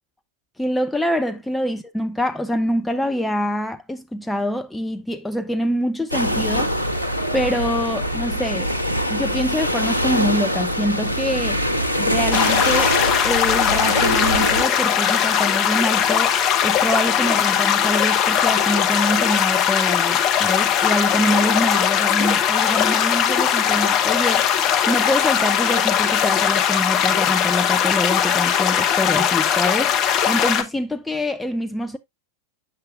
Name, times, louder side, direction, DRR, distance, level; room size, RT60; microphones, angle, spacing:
voice 1, 0.6-6.9 7.3-8.7 9.1-11.6 12.0-16.4 16.6-32.0, equal, 5° left, 0.5 m, -25 dB
sound 1, 6.1-14.6, equal, 85° right, 0.8 m, -23 dB
sound 2, 12.3-30.6, left 9 dB, 35° left, 0.9 m, -19 dB
8.1 x 6.6 x 2.5 m
figure-of-eight pair, 90°, 0 cm